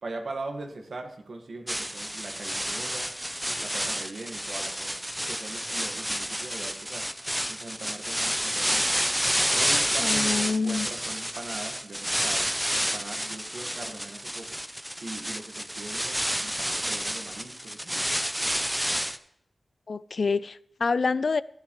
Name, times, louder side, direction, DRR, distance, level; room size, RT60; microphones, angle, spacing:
voice 1, 0.0-3.1 3.5-7.1 7.5-8.9 9.5-14.6 15.0-18.2, right 2 dB, 75° right, 1.7 m, -41 dB
sound 1, 1.7-19.2, equal, 5° right, 0.6 m, -29 dB
voice 2, 10.0-10.9 19.9-21.4, left 4 dB, 65° left, 0.4 m, -27 dB
15.5 x 10.5 x 3.1 m
wide cardioid pair, 95°, 0 cm